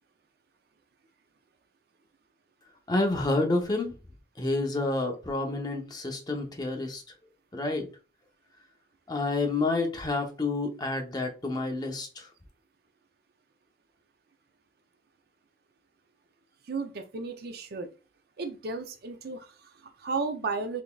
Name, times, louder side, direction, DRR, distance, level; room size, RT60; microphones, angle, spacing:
voice 1, 2.9-4.0 4.4-7.0 7.5-7.9 9.1-12.3, left 2 dB, 20° left, 0.7 m, -29 dB
voice 2, 16.7-17.9 18.4-20.8, right 4 dB, 55° right, 0.5 m, -34 dB
3.8 x 3.4 x 2.3 m
head